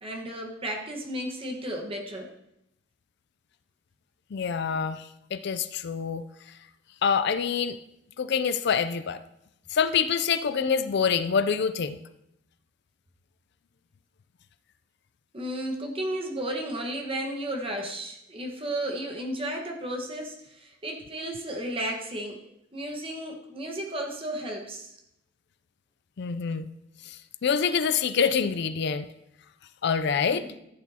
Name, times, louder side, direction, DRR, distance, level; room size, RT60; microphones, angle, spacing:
voice 1, 0.0-2.3 15.3-25.0 30.3-30.5, right 1 dB, 30° right, 1 dB, 1.4 m, -33 dB
voice 2, 4.3-5.0 5.3-6.2 7.0-7.8 8.2-9.2 9.7-12.0 26.2-26.7 27.1-27.2 27.4-29.1 29.8-30.5, left 6 dB, 60° left, 12 dB, 0.4 m, -26 dB
14.0 x 8.3 x 2.8 m, 0.79 s
head